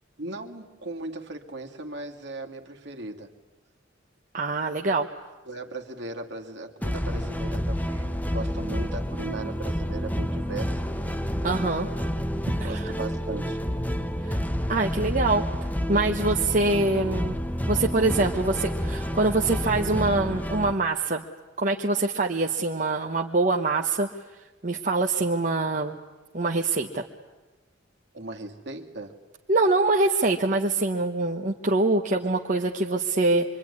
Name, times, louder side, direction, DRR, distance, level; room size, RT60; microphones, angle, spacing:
voice 1, 0.2-3.3 5.5-10.8 12.6-13.6 28.1-29.2, right 2 dB, 60° right, 2 dB, 2.2 m, -37 dB
voice 2, 4.3-5.1 11.4-11.9 12.6-12.9 14.2-14.4 14.7-15.4 15.9-17.4 17.7-21.2 21.6-24.1 24.6-26.0 26.3-27.1 29.5-33.4, right 2 dB, 40° right, 1 dB, 1.0 m, -24 dB
sound 1, 6.8-20.7, equal, 10° left, 1.0 m, -29 dB
25.5 x 24.0 x 9.7 m, 1.1 s
head